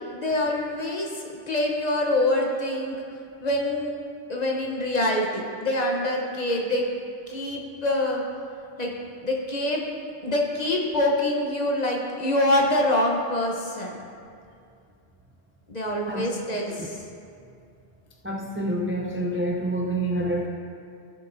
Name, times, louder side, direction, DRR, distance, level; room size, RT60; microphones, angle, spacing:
voice 1, 0.0-3.0 3.4-3.9 4.3-6.9 7.3-8.2 8.8-8.9 9.2-9.8 10.2-14.0 15.7-17.0, left 1 dB, 40° left, 0 dB, 1.0 m, -25 dB
voice 2, 18.2-20.5, right 1 dB, 15° right, -1 dB, 0.4 m, -27 dB
14.5 x 7.1 x 2.6 m, 2.3 s
omnidirectional pair, 1.1 m